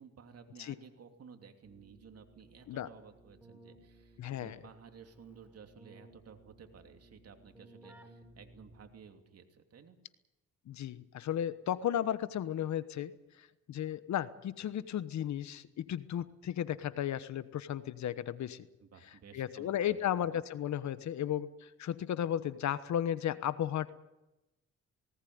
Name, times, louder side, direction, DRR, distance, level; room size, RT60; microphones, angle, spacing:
voice 1, 0.0-10.0 18.8-20.3, right 6 dB, 55° right, 6 dB, 2.9 m, -55 dB
Keyboard (musical), 1.6-9.2, right 1 dB, 5° right, 4.0 m, -59 dB
voice 2, 4.2-4.6 10.7-13.1 13.7-18.7 19.3-23.9, left 10 dB, 65° left, 14 dB, 1.2 m, -34 dB
18.5 x 18.5 x 9.5 m, 0.96 s
cardioid pair, 90°, 30 cm